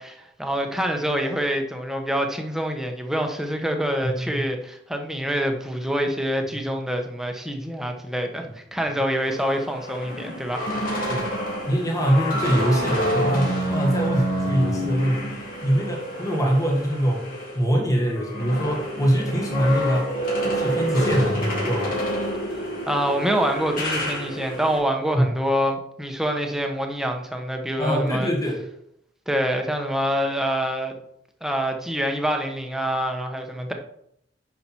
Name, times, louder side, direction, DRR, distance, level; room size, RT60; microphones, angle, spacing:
voice 1, 0.0-10.7 22.9-28.3 29.3-30.9 31.4-33.7, equal, ahead, 3 dB, 1.1 m, -26 dB
voice 2, 4.0-4.4 11.1-11.3 11.7-17.3 17.5-20.1 20.4-22.0 25.1-25.3 27.8-28.6, equal, 20° left, -1 dB, 1.8 m, -23 dB
sound 1, 9.2-17.6 17.9-24.8, equal, 50° left, 3.1 m, -28 dB
10.0 x 5.7 x 4.5 m, 0.74 s
head